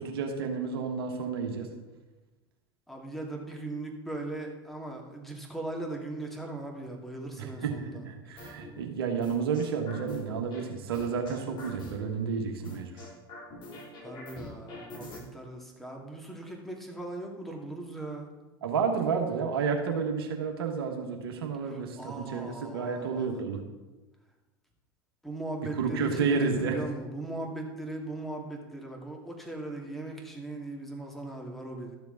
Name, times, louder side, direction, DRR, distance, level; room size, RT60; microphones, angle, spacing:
voice 1, 0.0-1.7 7.4-12.9 18.6-23.6 25.8-26.8, right 5 dB, 70° right, 2 dB, 1.4 m, -31 dB
voice 2, 2.9-8.0 14.0-18.3 21.6-23.3 25.2-31.9, right 2 dB, ahead, 0 dB, 2.4 m, -39 dB
sound 1, 8.4-8.7 9.2-10.6 10.9-12.1 12.6-15.2, left 2 dB, 40° left, 3.3 m, -44 dB
13.0 x 7.0 x 4.0 m, 1.1 s
hypercardioid pair, 80°, 13 cm